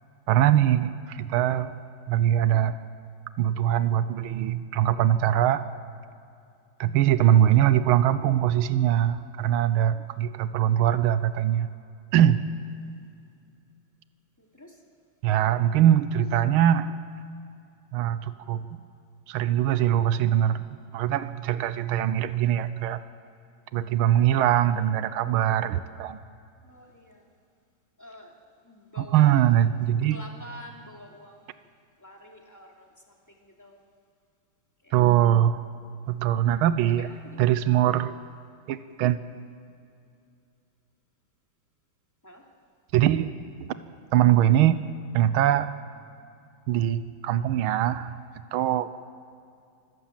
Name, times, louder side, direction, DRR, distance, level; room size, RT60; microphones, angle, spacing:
voice 1, 0.3-1.7 2.1-2.8 3.4-5.6 6.8-11.7 12.1-12.4 15.2-16.9 17.9-18.7 19.3-23.0 23.7-26.2 29.0-30.2 34.9-35.6 36.1-37.1 37.4-38.2 38.7-39.2 42.9-43.3 43.6-43.7 44.1-44.8 45.1-45.7 46.7-48.2 48.5-48.9, right 11 dB, 85° right, 13 dB, 1.6 m, -22 dB
voice 2, 14.4-14.8 26.6-27.3 28.0-29.5 30.0-31.6 32.0-33.8 34.8-34.9 35.9-36.2 36.9-37.5 42.2-42.4, equal, 10° left, 0 dB, 2.7 m, -48 dB
26.0 x 16.0 x 7.4 m, 2.4 s
omnidirectional pair, 2.3 m